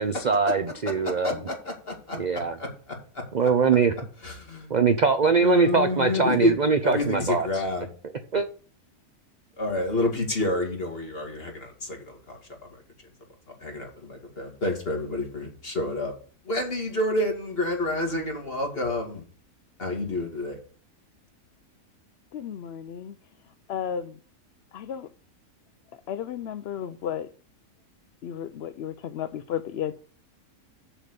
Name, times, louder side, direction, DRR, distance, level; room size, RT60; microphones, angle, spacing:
voice 1, 0.0-1.3 2.2-2.5 3.3-3.9 4.7-7.5 8.3-8.5, right 5 dB, 45° right, 9 dB, 0.5 m, -22 dB
voice 2, 1.0-3.2 4.2-4.7 5.4-6.6 6.8-7.9 9.6-12.8 13.6-16.1 16.4-19.2 19.8-20.6, left 2 dB, 40° left, 1 dB, 2.7 m, -29 dB
voice 3, 22.3-23.1 23.7-24.1 24.7-25.1 26.1-27.3 28.2-29.9, left 9 dB, 65° left, 11 dB, 0.6 m, -33 dB
7.3 x 6.9 x 6.8 m, 0.42 s
omnidirectional pair, 1.6 m